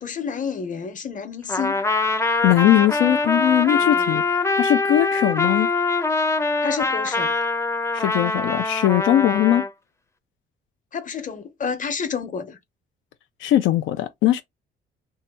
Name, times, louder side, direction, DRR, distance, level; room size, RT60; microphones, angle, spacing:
voice 1, 0.0-1.8 3.7-4.1 6.6-7.4 10.9-12.6, left 6 dB, 40° left, 0.9 m, -30 dB
Trumpet, 1.5-9.7, left 3 dB, 15° left, 0.5 m, -23 dB
voice 2, 2.4-4.2 4.6-5.7 7.9-9.6 13.4-14.4, left 13 dB, 85° left, 0.4 m, -20 dB
2.7 x 2.3 x 4.1 m
cardioid pair, 90°, 20 cm